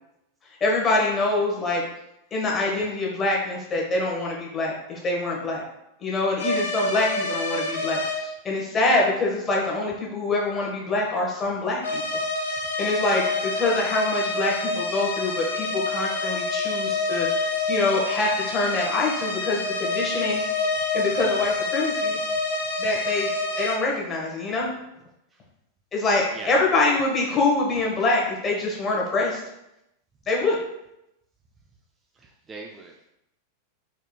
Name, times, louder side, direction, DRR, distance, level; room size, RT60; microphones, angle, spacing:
voice 1, 0.6-1.8 2.3-5.6 6.0-12.0 12.8-17.3 17.7-20.4 20.9-22.2 22.8-23.3 23.6-24.7 25.9-29.4 30.3-30.6, left 2 dB, 20° left, -2 dB, 1.4 m, -25 dB
sound 1, 6.4-8.2 11.8-23.8, left 2 dB, 65° left, 0.9 m, -27 dB
voice 2, 32.2-33.1, right 3 dB, 20° right, 1 dB, 0.4 m, -40 dB
5.0 x 4.3 x 2.3 m, 0.85 s
figure-of-eight pair, 90°, 0 cm